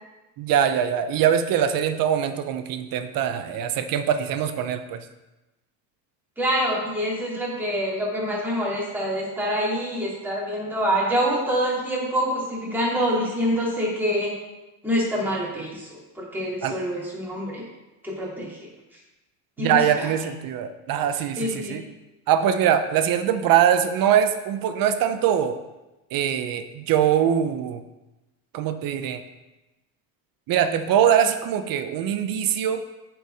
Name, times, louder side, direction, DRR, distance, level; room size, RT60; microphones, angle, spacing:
voice 1, 0.4-5.0 16.6-16.8 19.6-21.9 22.3-25.6 26.1-27.8 28.5-29.2 30.5-32.8, right 9 dB, 55° right, 10 dB, 0.8 m, -22 dB
voice 2, 6.4-14.3 14.8-17.6 18.0-18.7 19.6-20.1 21.4-21.8, equal, 5° right, -6 dB, 2.8 m, -26 dB
7.9 x 4.8 x 5.2 m, 1.0 s
cardioid pair, 115°, 41 cm